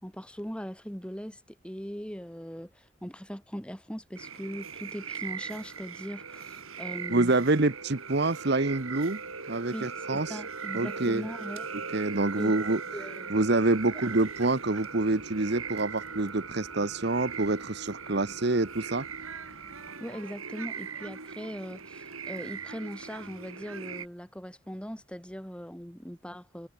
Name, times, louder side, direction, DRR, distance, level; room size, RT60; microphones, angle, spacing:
voice 1, 0.0-7.3 9.7-11.7 12.4-12.5 12.9-13.5 20.0-26.7, equal, 5° left, 3.0 m, -40 dB
sound 1, 4.2-24.1, right 5 dB, 80° right, 6.3 m, -39 dB
voice 2, 7.1-9.2 9.5-10.4 10.7-11.3 11.9-12.8 13.3-19.1, right 2 dB, 50° right, 1.1 m, -27 dB
sound 2, 13.3-19.9, left 1 dB, 80° left, 7.7 m, -59 dB
head